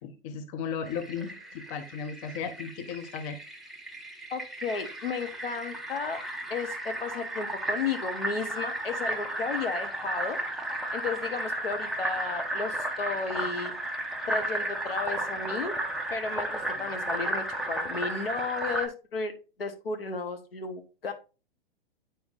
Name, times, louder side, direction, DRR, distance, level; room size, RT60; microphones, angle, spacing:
voice 1, 0.0-3.4, left 6 dB, 35° left, 8 dB, 0.7 m, -35 dB
Fill (with liquid), 0.8-18.9, right 1 dB, ahead, 0.3 m, -34 dB
voice 2, 4.3-6.2 6.5-10.4 10.9-13.7 14.3-15.7 16.1-19.3 19.6-21.1, left 4 dB, 75° left, 6 dB, 1.0 m, -33 dB
9.3 x 4.3 x 2.5 m, 0.32 s
figure-of-eight pair, 105°, 29 cm